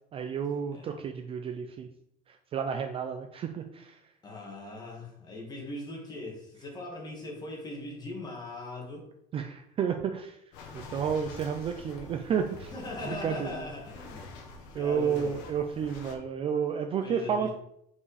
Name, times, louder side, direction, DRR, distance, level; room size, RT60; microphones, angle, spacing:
voice 1, 0.1-1.9 2.3-4.0 9.3-10.4 10.7-12.7 13.1-13.6 14.7-17.5, right 7 dB, 30° right, 6 dB, 0.4 m, -31 dB
voice 2, 4.2-9.1 12.7-14.2 14.8-15.4 17.0-17.5, left 2 dB, 20° left, -1 dB, 1.8 m, -40 dB
sound 1, 10.5-16.1, left 4 dB, 70° left, 1.5 m, -46 dB
5.5 x 4.7 x 4.9 m, 0.74 s
cardioid pair, 165°, 20 cm